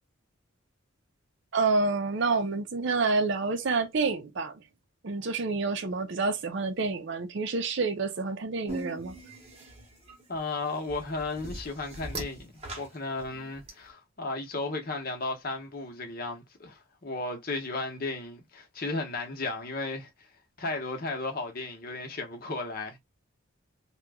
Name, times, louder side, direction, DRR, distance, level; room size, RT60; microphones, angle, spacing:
voice 1, 1.5-4.6 5.0-9.1, right 4 dB, 55° right, 0.5 m, -28 dB
sound 1, 8.7-13.7, right 2 dB, 30° right, 0.9 m, -41 dB
voice 2, 10.3-20.3 20.6-23.0, left 3 dB, 45° left, 0.8 m, -34 dB
2.9 x 2.2 x 3.4 m
head